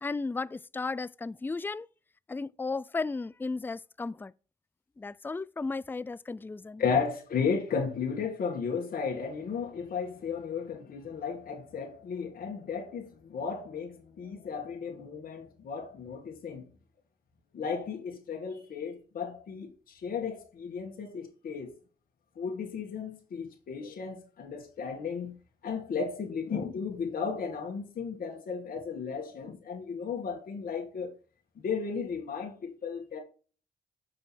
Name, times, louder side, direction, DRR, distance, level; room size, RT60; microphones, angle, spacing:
voice 1, 0.0-1.9 2.3-4.3 5.0-6.8, left 3 dB, 15° left, 0.4 m, -34 dB
voice 2, 6.8-16.6 17.5-21.7 22.4-25.3 25.6-31.2 31.6-33.2, left 5 dB, 65° left, 2.0 m, -34 dB
6.9 x 5.2 x 4.3 m
supercardioid pair, 60°, 16 cm